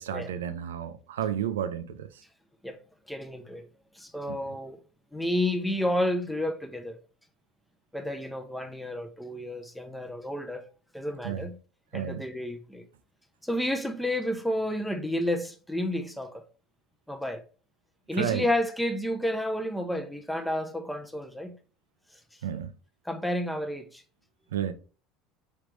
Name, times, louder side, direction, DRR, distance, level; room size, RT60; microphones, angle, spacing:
voice 1, 0.0-2.1 11.2-11.5 11.9-12.2 18.1-18.4 22.4-22.7 24.5-24.7, right 9 dB, 90° right, 0.4 m, -31 dB
voice 2, 3.1-3.7 3.9-4.8 5.1-7.0 7.9-10.6 10.9-11.6 11.9-12.9 13.4-16.4 17.1-17.4 18.1-21.6 22.1-22.4 23.0-24.0, left 1 dB, 5° left, 0.6 m, -31 dB
4.9 x 3.2 x 3.2 m
hypercardioid pair, 85°, 0 cm